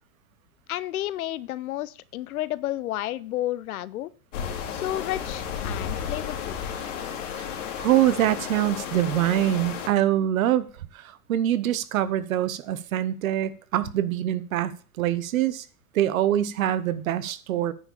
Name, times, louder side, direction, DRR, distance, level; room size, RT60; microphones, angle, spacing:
voice 1, 0.7-4.1 4.7-6.6, left 14 dB, 70° left, 19 dB, 0.7 m, -31 dB
sound 1, 4.3-9.9, left 7 dB, 55° left, 2.5 m, -33 dB
voice 2, 7.8-10.7 10.9-14.7 15.0-15.6 15.9-17.7, right 12 dB, 65° right, 16 dB, 1.0 m, -24 dB
9.7 x 4.9 x 7.1 m, 0.41 s
supercardioid pair, 170°, 45 cm